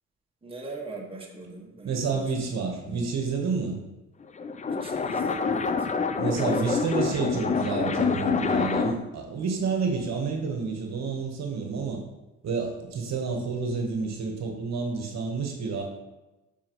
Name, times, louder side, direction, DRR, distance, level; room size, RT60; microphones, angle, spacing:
voice 1, 0.4-2.5 2.9-3.0 4.7-5.9 6.1-6.8 7.2-7.4, right 2 dB, 20° right, -1 dB, 1.5 m, -40 dB
voice 2, 1.8-3.8 6.2-12.0 12.4-15.8, right 4 dB, 60° right, 2 dB, 1.1 m, -29 dB
sound 1, 4.2-9.1, left 5 dB, 25° left, 0.4 m, -27 dB
7.4 x 5.0 x 3.0 m, 1.1 s
cardioid pair, 90°, 30 cm